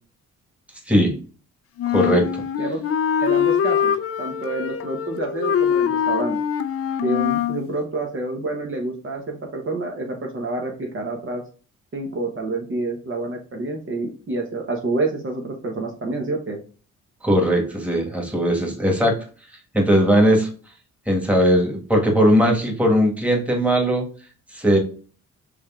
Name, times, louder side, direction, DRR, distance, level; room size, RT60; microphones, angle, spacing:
voice 1, 0.9-1.2 1.9-2.4 17.2-19.2 19.7-20.5 21.1-24.0 24.5-24.8, equal, 5° right, 0 dB, 1.6 m, -18 dB
Wind instrument woodwind instrument, 1.8-7.6, left 8 dB, 50° left, 0.5 m, -23 dB
voice 2, 3.2-6.4 7.0-11.4 11.9-16.6, right 2 dB, 45° right, 1 dB, 1.1 m, -28 dB
5.3 x 3.3 x 2.4 m, 0.39 s
cardioid pair, 90°, 30 cm